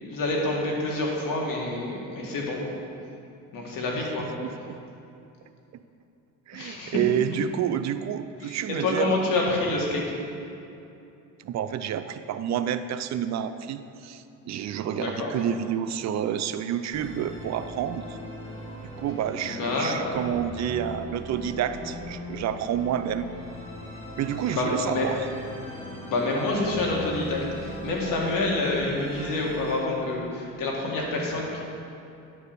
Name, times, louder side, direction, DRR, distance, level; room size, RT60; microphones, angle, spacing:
voice 1, 0.0-2.6 3.5-4.3 6.5-7.0 8.4-10.0 14.9-15.3 19.5-20.2 24.5-25.1 26.0-31.6, left 2 dB, 70° left, -2 dB, 2.1 m, -27 dB
voice 2, 4.0-4.8 6.5-9.2 11.4-18.2 18.8-23.3 24.2-25.2, right 9 dB, 55° right, 11 dB, 0.5 m, -29 dB
Musical instrument, 16.9-29.7, left 1 dB, 15° left, 2.2 m, -39 dB
9.8 x 4.7 x 6.8 m, 2.7 s
cardioid pair, 100°, 34 cm